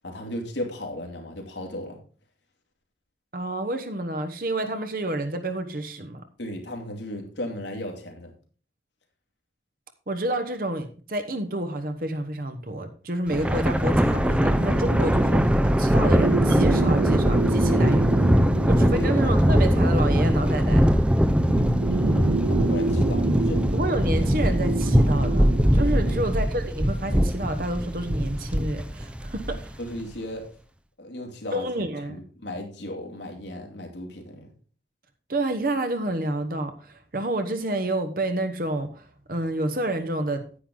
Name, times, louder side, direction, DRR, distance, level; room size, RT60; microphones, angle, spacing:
voice 1, 0.0-2.0 6.4-8.3 17.7-18.1 18.9-19.1 21.9-23.7 26.0-26.4 29.8-30.4 31.0-34.5, left 1 dB, 90° left, 2 dB, 2.7 m, -36 dB
voice 2, 3.3-6.2 10.1-18.1 18.7-20.9 23.7-29.7 31.5-32.2 35.3-40.4, right 1 dB, 55° right, 7 dB, 1.1 m, -29 dB
Thunder, 13.3-29.9, equal, 5° right, 0.5 m, -21 dB
sound 1, 13.9-26.3, right 3 dB, 80° right, 0.5 m, -30 dB
9.9 x 9.0 x 3.8 m, 0.38 s
head